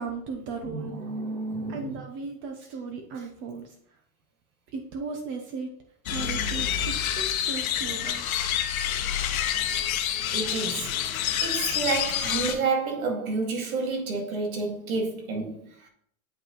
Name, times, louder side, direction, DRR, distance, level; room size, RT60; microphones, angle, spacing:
voice 1, 0.0-0.9 1.7-3.7 4.7-5.7 6.1-8.3, right 4 dB, 30° right, 0.7 m, -36 dB
voice 2, 0.6-2.0 10.3-11.0 11.4-15.9, right 4 dB, 85° right, 2.0 m, -30 dB
sound 1, 6.1-12.5, left 9 dB, 85° left, 1.0 m, -28 dB
8.1 x 5.1 x 3.0 m
supercardioid pair, 150°, 41 cm